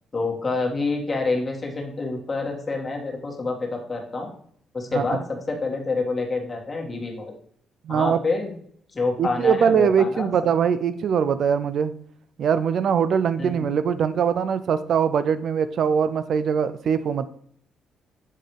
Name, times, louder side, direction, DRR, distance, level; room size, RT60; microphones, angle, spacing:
voice 1, 0.1-4.3 4.7-7.3 7.9-8.5 8.9-10.3 13.4-13.7, left 3 dB, 30° left, 0 dB, 1.9 m, -27 dB
voice 2, 7.8-8.2 9.2-11.9 12.4-17.3, right 7 dB, 65° right, 13 dB, 0.4 m, -22 dB
7.5 x 3.9 x 3.2 m, 0.63 s
supercardioid pair, 65°, 0 cm